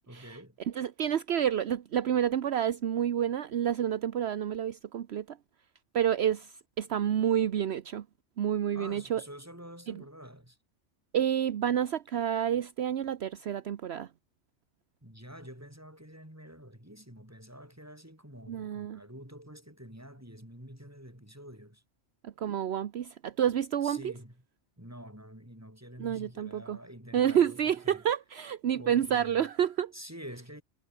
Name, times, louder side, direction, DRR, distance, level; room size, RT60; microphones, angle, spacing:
voice 1, 0.1-0.6 8.7-10.6 15.0-21.8 23.8-24.3 24.8-28.0 28.8-29.4 29.9-30.6, equal, 15° right, 6.8 m, -48 dB
voice 2, 0.7-5.4 5.9-8.1 8.4-9.2 9.9-10.0 11.1-14.1 18.5-19.0 22.2-24.1 26.0-26.8 27.1-29.9, right 9 dB, 65° right, 1.0 m, -29 dB
omnidirectional pair, 1.2 m